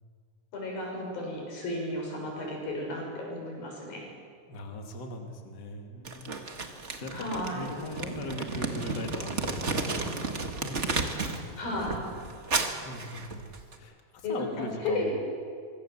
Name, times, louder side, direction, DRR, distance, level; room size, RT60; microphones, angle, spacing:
voice 1, 0.5-4.1 7.1-7.7 11.6-12.0 14.2-15.1, left 1 dB, 70° left, 0 dB, 8.3 m, -33 dB
voice 2, 4.5-6.4 7.0-7.3 7.5-10.2 10.6-11.0 11.3-11.6 12.8-13.5 13.8-15.1, left 2 dB, 30° left, 3 dB, 2.6 m, -40 dB
Crumpling crinkling, 6.0-11.4 11.8-13.7, right 3 dB, 45° right, 0.8 m, -33 dB
25.0 x 24.5 x 7.5 m, 2.2 s
omnidirectional pair, 4.3 m